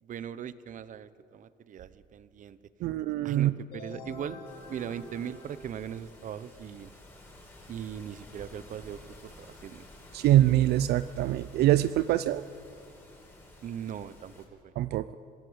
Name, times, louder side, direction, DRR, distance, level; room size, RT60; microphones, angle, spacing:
voice 1, 0.0-2.6 3.2-4.4 4.7-6.9 7.7-9.9 13.6-14.7, right 9 dB, 50° right, 15 dB, 0.9 m, -39 dB
voice 2, 2.8-3.5 10.1-12.4 14.8-15.1, right 13 dB, 75° right, 14 dB, 0.6 m, -24 dB
sound 1, 3.7-6.4, left 1 dB, 65° left, 6.9 m, -46 dB
sound 2, 4.4-14.4, left 1 dB, 15° left, 5.4 m, -53 dB
25.5 x 16.5 x 8.1 m, 2.7 s
cardioid pair, 110°, 17 cm